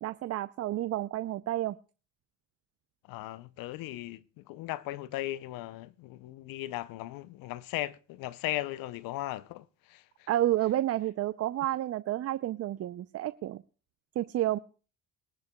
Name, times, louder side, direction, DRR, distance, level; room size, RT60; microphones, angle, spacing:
voice 1, 0.0-1.8 10.3-13.6 14.2-14.6, right 14 dB, 45° right, 0.5 m, -30 dB
voice 2, 3.0-10.3, left 16 dB, 75° left, 0.6 m, -37 dB
23.0 x 12.0 x 2.2 m
supercardioid pair, 75°, 35 cm